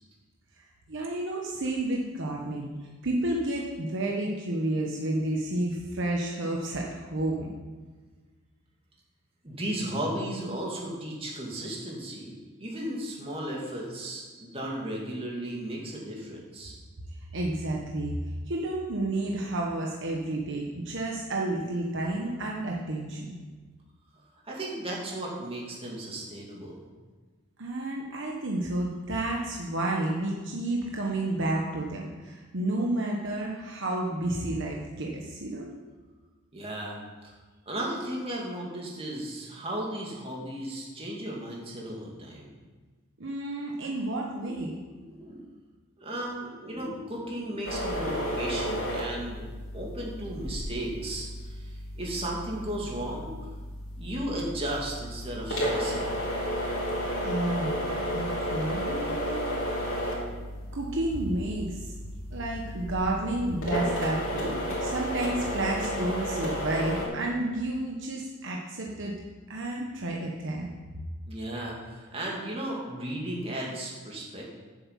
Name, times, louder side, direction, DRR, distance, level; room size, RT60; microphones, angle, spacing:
voice 1, 0.9-2.7 3.0-7.5 17.3-18.1 18.5-23.3 27.6-35.7 43.2-44.8 57.2-59.6 60.7-61.9 62.3-69.2 69.5-70.7, right 1 dB, 60° right, -1 dB, 1.2 m, -31 dB
voice 2, 9.4-16.8 24.4-26.8 36.5-37.0 37.2-37.4 37.7-42.5 44.4-44.6 45.0-45.4 46.0-49.5 49.7-53.3 54.0-56.1 71.3-74.5, right 1 dB, 25° right, -3 dB, 2.6 m, -35 dB
sound 1, 47.6-67.0, equal, 70° left, 3.2 m, -33 dB
7.8 x 7.3 x 7.6 m, 1.3 s
head